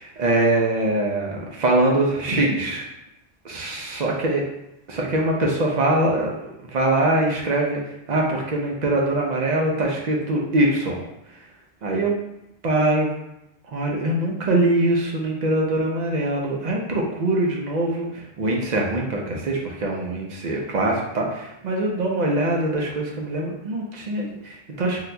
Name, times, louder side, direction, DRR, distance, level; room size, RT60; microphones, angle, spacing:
voice 1, 0.0-2.8 3.4-4.4 4.9-7.8 8.1-11.0 11.8-12.1 12.6-13.1 13.7-25.0, right 2 dB, 50° right, -1 dB, 0.6 m, -23 dB
3.9 x 2.7 x 2.2 m, 0.86 s
omnidirectional pair, 1.1 m